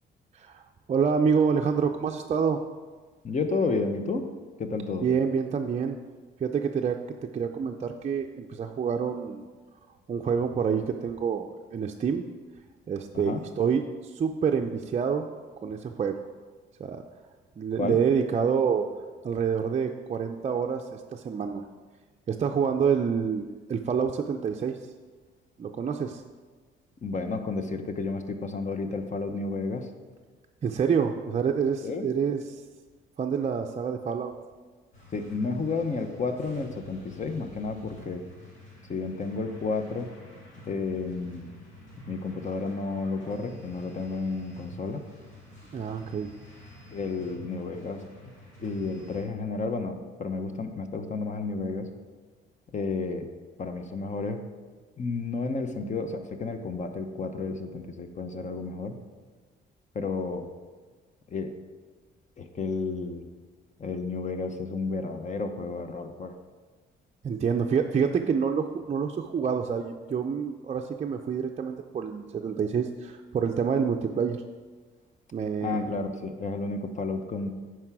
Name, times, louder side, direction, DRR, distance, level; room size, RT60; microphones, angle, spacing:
voice 1, 0.9-2.6 5.0-6.0 6.4-7.0 7.3-9.4 10.1-12.3 12.9-15.3 15.6-16.2 16.8-17.0 17.6-18.9 19.2-21.7 22.3-24.8 25.6-26.2 30.6-32.4 33.2-34.3 45.7-46.3 67.2-74.4 75.3-75.9, right 6 dB, 35° right, 3 dB, 0.4 m, -27 dB
voice 2, 3.2-4.3 4.6-5.1 13.1-13.4 17.8-18.0 27.0-29.9 31.8-32.1 35.1-38.2 38.9-40.1 40.7-41.5 42.1-45.1 46.9-48.0 48.6-51.9 52.7-53.2 53.6-54.5 55.0-59.0 59.9-60.5 61.3-61.6 62.4-63.3 63.8-66.4 75.6-77.5, left 4 dB, 35° left, 7 dB, 0.9 m, -31 dB
sound 1, 34.9-49.2, equal, 85° left, 2.4 m, -49 dB
9.6 x 4.7 x 4.7 m, 1.4 s
cardioid pair, 90°, 20 cm